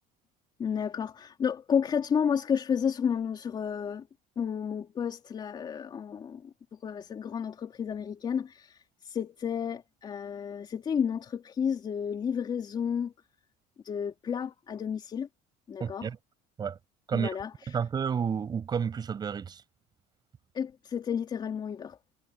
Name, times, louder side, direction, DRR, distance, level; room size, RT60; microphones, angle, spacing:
voice 1, 0.6-4.1 4.4-13.1 13.8-15.3 15.7-16.1 17.1-17.8 20.5-22.0, left 7 dB, 25° left, 3.7 m, -31 dB
voice 2, 15.8-16.2 16.6-16.8 17.1-17.3 17.7-19.6, right 7 dB, 20° right, 6.2 m, -30 dB
cardioid pair, 170°, 18 cm